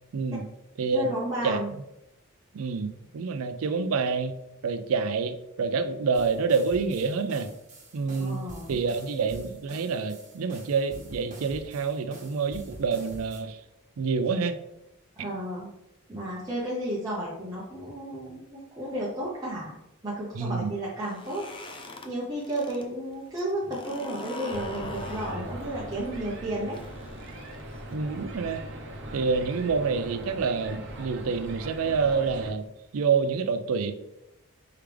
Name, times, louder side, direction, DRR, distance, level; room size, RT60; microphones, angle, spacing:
voice 1, 0.1-0.4 0.8-1.1 1.4-1.6 2.5-4.4 4.6-7.5 7.9-13.6 14.0-14.6 20.4-20.7 27.9-28.6 29.1-32.6 32.9-33.9, right 5 dB, 75° right, 9 dB, 0.4 m, -27 dB
voice 2, 0.9-1.7 8.2-8.8 15.2-15.7 16.1-19.8 20.0-21.5 22.0-26.8, right 1 dB, 15° right, -7 dB, 0.8 m, -32 dB
sound 1, 6.1-13.4, right 1 dB, 35° right, 1.2 m, -46 dB
sound 2, 20.9-22.9 23.2-27.9, left 2 dB, 25° left, 0.4 m, -42 dB
sound 3, 24.5-32.5, right 1 dB, 55° right, 0.8 m, -40 dB
4.6 x 3.5 x 3.3 m, 0.86 s
head